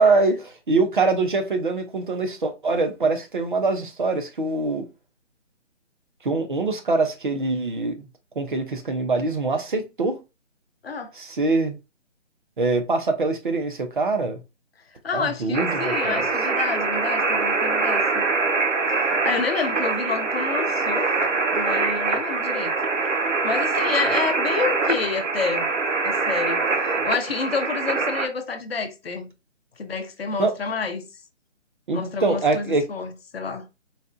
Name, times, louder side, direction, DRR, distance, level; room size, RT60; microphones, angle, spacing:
voice 1, 0.0-4.9 6.2-8.1 8.4-10.2 11.1-11.8 12.6-14.4 15.1-16.2 30.4-30.5 31.9-32.8, right 3 dB, 45° right, 0.6 m, -23 dB
voice 2, 15.0-18.3 18.9-21.3 21.5-22.7 23.4-25.7 26.0-26.7 27.0-29.3 29.8-31.0 31.9-33.6, left 5 dB, 55° left, 0.7 m, -29 dB
sound 1, 15.5-28.3, right 3 dB, 80° right, 0.8 m, -24 dB
4.1 x 2.2 x 2.5 m
figure-of-eight pair, 150°, 37 cm